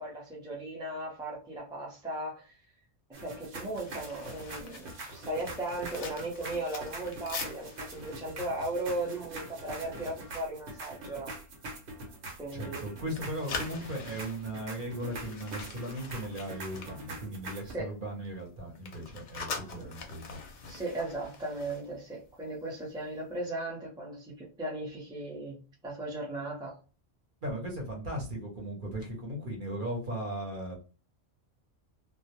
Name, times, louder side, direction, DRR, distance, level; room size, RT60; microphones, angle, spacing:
voice 1, 0.0-2.6 3.1-11.3 12.4-12.8 17.7-17.9 19.7-19.9 20.6-26.8, right 1 dB, 5° right, -3 dB, 0.5 m, -37 dB
sound 1, 3.1-17.7, right 2 dB, 80° right, 1.0 m, -44 dB
sound 2, 3.7-9.8 10.1-10.3 10.7-11.1 11.6-12.8 13.1-17.8 18.1-22.6 22.9-23.1, left 4 dB, 55° left, 0.6 m, -44 dB
voice 2, 12.5-20.4 27.4-30.7, right 1 dB, 50° right, 0 dB, 0.9 m, -37 dB
2.2 x 2.0 x 2.8 m, 0.35 s
omnidirectional pair, 1.1 m